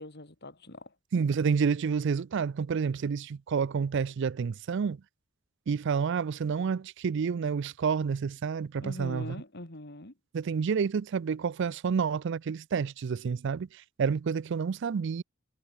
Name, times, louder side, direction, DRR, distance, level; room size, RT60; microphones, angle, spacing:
voice 1, 0.0-1.0 8.8-10.1, left 1 dB, 55° left, 3.5 m, -42 dB
voice 2, 1.1-5.0 5.7-9.3 10.3-13.7 14.0-15.2, right 6 dB, 60° right, 0.4 m, -29 dB
head